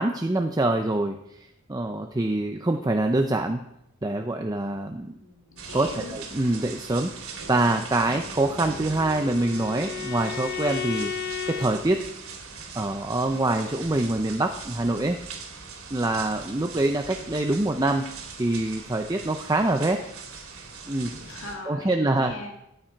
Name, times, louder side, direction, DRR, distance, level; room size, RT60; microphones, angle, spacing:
voice 1, 0.0-3.6 4.0-5.1 5.7-12.0 12.7-15.2 15.9-18.0 18.4-20.0 20.9-21.1 21.7-22.3, right 2 dB, 15° right, 5 dB, 0.6 m, -25 dB
voice 2, 5.1-6.2 21.3-22.5, left 2 dB, 65° left, 1 dB, 2.4 m, -40 dB
sound 1, 5.6-21.6, right 4 dB, 75° right, 2.5 m, -40 dB
Bowed string instrument, 8.2-11.7, left 7 dB, 45° left, 0.9 m, -34 dB
13.5 x 9.0 x 4.6 m, 0.82 s
head